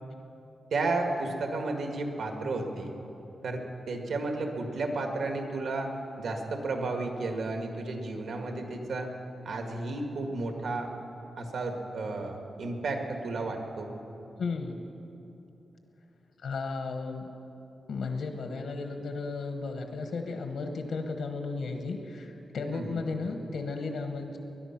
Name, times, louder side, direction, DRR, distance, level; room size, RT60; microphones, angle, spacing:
voice 1, 0.7-2.9 3.4-5.9 6.2-9.1 9.4-10.9 11.4-13.9 22.7-23.0, right 2 dB, 75° right, 3 dB, 1.7 m, -32 dB
voice 2, 14.4-14.8 16.4-17.3 17.9-24.4, left 4 dB, 75° left, 5 dB, 1.2 m, -34 dB
21.0 x 11.0 x 5.9 m, 3.0 s
wide cardioid pair, 180°, 0 cm